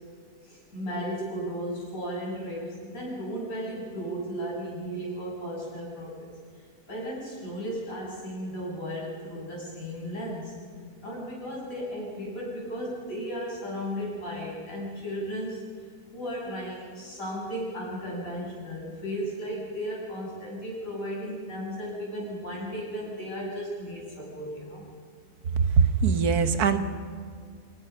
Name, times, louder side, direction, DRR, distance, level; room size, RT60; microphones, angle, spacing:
voice 1, 0.4-6.3 6.9-10.5 11.0-15.6 16.1-24.9, equal, 65° left, -4 dB, 7.5 m, -35 dB
voice 2, 25.8-26.8, right 6 dB, 90° right, 10 dB, 1.6 m, -21 dB
27.5 x 18.0 x 5.6 m, 2.1 s
omnidirectional pair, 1.6 m